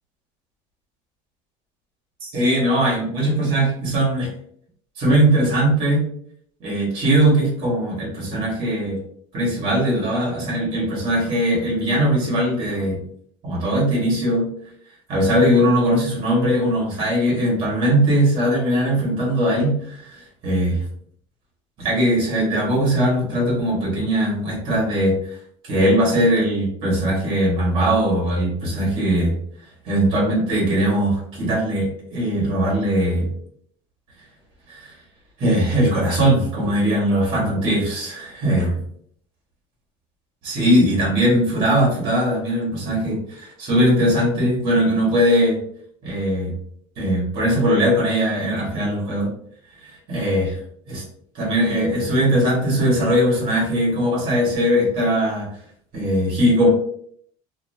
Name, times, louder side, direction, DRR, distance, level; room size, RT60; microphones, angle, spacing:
voice 1, 2.2-4.3 5.0-6.1 6.6-9.0 9.3-13.0 13.4-14.5 15.1-20.8 21.8-25.2 25.6-29.3 29.8-33.3 34.7-34.9 35.4-38.8 40.4-45.6 46.0-46.5 47.0-49.3 50.1-50.6 50.9-51.0 51.3-55.5 55.9-56.7, equal, 40° right, -3 dB, 1.5 m, -20 dB
2.8 x 2.7 x 2.7 m, 0.63 s
cardioid pair, 170°, 13 cm